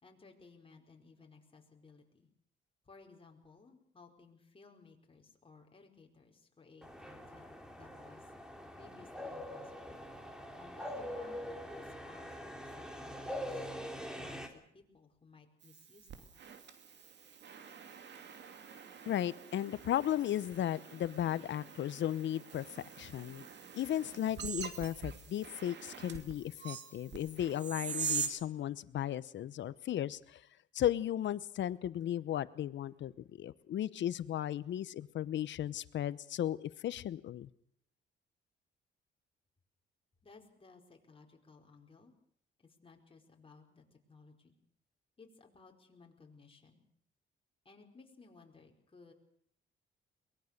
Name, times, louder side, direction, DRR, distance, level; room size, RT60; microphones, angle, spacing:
voice 1, 0.0-2.3 2.8-8.3 8.8-10.0 10.6-13.7 14.0-16.4 40.2-42.1 42.6-44.6 45.2-46.8 47.6-49.1, left 4 dB, 25° left, 2 dB, 4.7 m, -59 dB
sound 1, 6.8-14.5, equal, 5° right, 3.3 m, -44 dB
sound 2, 15.6-28.3, right 5 dB, 60° right, 2.7 m, -44 dB
voice 2, 19.1-22.7 23.0-23.5 23.7-30.4 30.7-37.5, left 11 dB, 65° left, 17 dB, 0.9 m, -35 dB
23.0 x 20.0 x 6.7 m, 0.67 s
cardioid pair, 90°, 20 cm